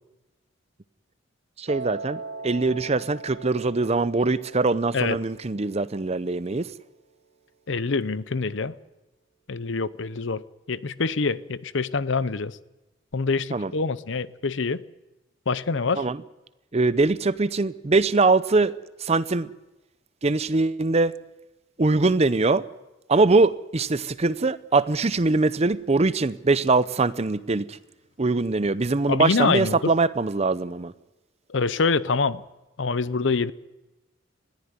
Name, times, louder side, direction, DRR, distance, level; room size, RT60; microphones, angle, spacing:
voice 1, 1.6-6.7 13.5-13.7 16.0-16.2 16.7-18.7 19.0-19.5 20.2-21.1 21.8-22.6 23.1-27.8 28.2-30.9, right 3 dB, 35° right, 0.6 m, -22 dB
Piano, 1.7-7.8, right 3 dB, 80° right, 1.6 m, -41 dB
voice 2, 7.7-8.8 9.5-12.6 13.1-14.8 15.5-16.1 29.1-29.9 31.5-32.4 32.8-33.5, left 4 dB, 65° left, 0.7 m, -25 dB
21.0 x 15.0 x 9.7 m
head